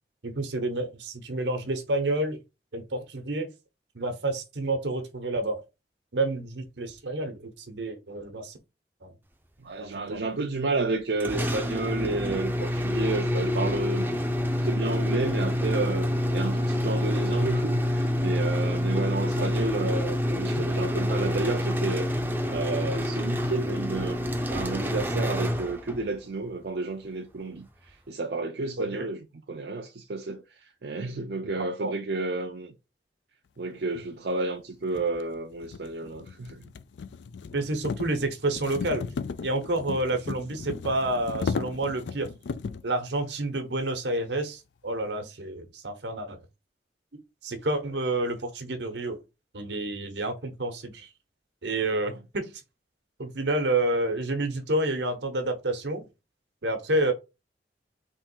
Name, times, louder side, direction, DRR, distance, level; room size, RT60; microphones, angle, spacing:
voice 1, 0.2-2.4 2.7-3.5 3.9-5.6 6.1-8.6 9.0-9.1 9.8-10.2 11.1-11.5 19.3-19.5 28.8-29.1 31.8-31.9 37.5-39.0 39.4-42.3 42.8-46.4 47.4-49.2 49.5-51.1 51.6-52.5 53.2-56.1 56.6-57.1, right 2 dB, 85° right, 1.1 m, -29 dB
voice 2, 9.6-14.1 14.6-22.1 22.5-32.7 33.6-36.6, right 3 dB, 65° right, 0.5 m, -31 dB
sound 1, 11.2-26.1, left 1 dB, 10° right, 0.5 m, -27 dB
sound 2, 34.1-34.2 34.9-42.9, left 5 dB, 80° left, 0.4 m, -36 dB
3.6 x 3.1 x 4.5 m
head